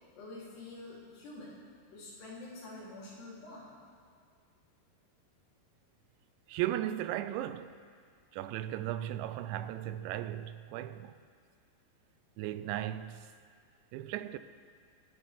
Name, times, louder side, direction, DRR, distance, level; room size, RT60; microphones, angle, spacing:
voice 1, 0.1-1.6 1.9-3.8, left 2 dB, 70° left, 5.4 m, -47 dB
voice 2, 6.5-7.8 8.3-11.2 12.4-13.3 13.9-14.4, right 12 dB, 85° right, 2.9 m, -36 dB
26.0 x 10.5 x 3.5 m
omnidirectional pair, 5.1 m